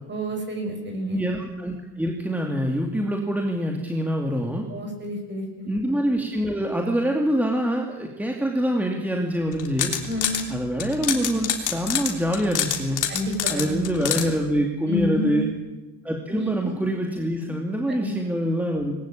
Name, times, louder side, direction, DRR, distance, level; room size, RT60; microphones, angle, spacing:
voice 1, 0.1-1.2 4.7-5.7 10.1-10.5 13.1-13.8 14.9-15.4 16.3-16.8 17.9-18.1, left 1 dB, 25° right, 2 dB, 6.5 m, -29 dB
voice 2, 1.1-4.6 5.7-9.9 10.5-13.0 13.5-15.5 16.0-19.0, equal, 5° right, 1 dB, 2.6 m, -25 dB
sound 1, 9.5-10.4 10.8-14.2, left 9 dB, 45° left, 3.4 m, -26 dB
20.5 x 18.0 x 8.7 m, 1.1 s
supercardioid pair, 110°, 41 cm